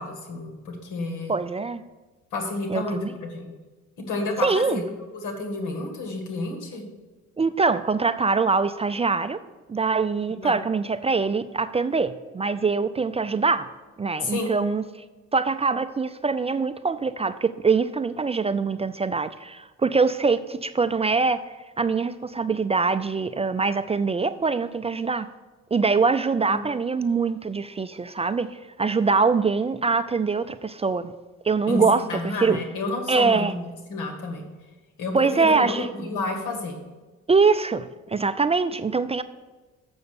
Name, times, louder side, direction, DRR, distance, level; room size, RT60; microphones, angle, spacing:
voice 1, 0.0-1.3 2.3-3.5 4.1-6.8 10.4-10.6 14.2-14.6 26.5-26.6 31.7-34.4 35.0-36.8, left 2 dB, 85° left, 3 dB, 1.9 m, -30 dB
voice 2, 1.3-1.8 2.7-3.1 4.4-4.8 7.4-9.4 9.7-13.7 14.0-14.8 15.3-21.4 21.8-25.3 25.7-31.1 31.4-32.6 33.1-33.5 35.1-36.1 37.3-39.2, right 4 dB, 20° right, 12 dB, 0.3 m, -23 dB
7.0 x 6.4 x 6.7 m, 1.2 s
cardioid pair, 90°, 30 cm